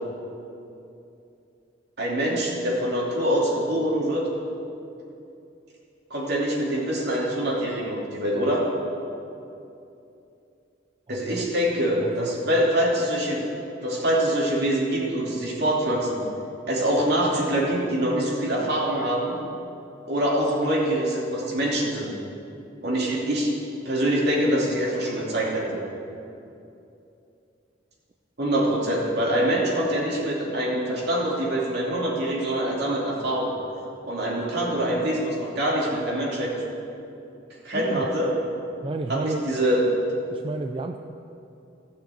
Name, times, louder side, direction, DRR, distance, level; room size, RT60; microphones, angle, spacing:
voice 1, 2.0-4.3 6.1-8.6 11.1-13.4 13.8-16.2 16.7-19.4 20.1-22.1 22.8-23.5 23.8-25.8 28.4-33.5 34.0-36.5 37.6-38.4 39.1-39.9, right 1 dB, 60° right, -3 dB, 2.8 m, -24 dB
voice 2, 11.1-11.5 12.0-12.7 37.7-38.1 38.8-39.4 40.3-41.0, right 2 dB, 30° right, 5 dB, 0.4 m, -32 dB
15.5 x 6.6 x 8.3 m, 2.7 s
head